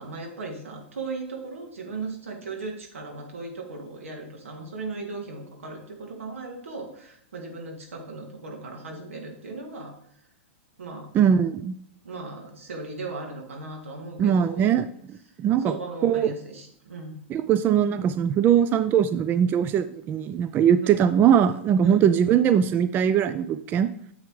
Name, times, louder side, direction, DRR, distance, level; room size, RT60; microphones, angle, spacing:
voice 1, 0.0-9.9 10.8-11.1 12.0-14.8 15.3-17.2 20.8-21.0 21.8-22.1, right 3 dB, 85° right, 2 dB, 2.4 m, -37 dB
voice 2, 11.1-11.7 14.2-14.9 15.4-15.7 16.0-16.3 17.3-23.9, right 8 dB, 30° right, 13 dB, 0.4 m, -21 dB
9.8 x 7.3 x 3.3 m, 0.70 s
hypercardioid pair, 115°, 7 cm